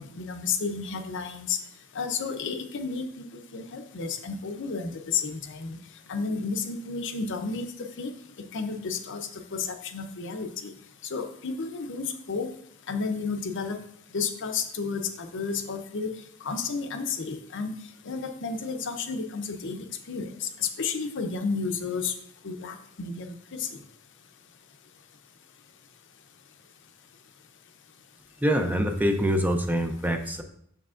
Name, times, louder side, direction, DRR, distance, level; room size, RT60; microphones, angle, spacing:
voice 1, 0.0-1.6 1.9-3.2 3.5-5.8 6.1-7.7 8.0-8.1 8.5-10.7 11.1-12.5 12.9-13.8 14.1-16.1 16.4-17.7 18.0-22.1 22.4-23.7, left 5 dB, 55° left, 6 dB, 0.6 m, -32 dB
voice 2, 28.4-30.4, equal, 10° right, 5 dB, 0.5 m, -25 dB
7.3 x 6.6 x 2.5 m, 0.69 s
head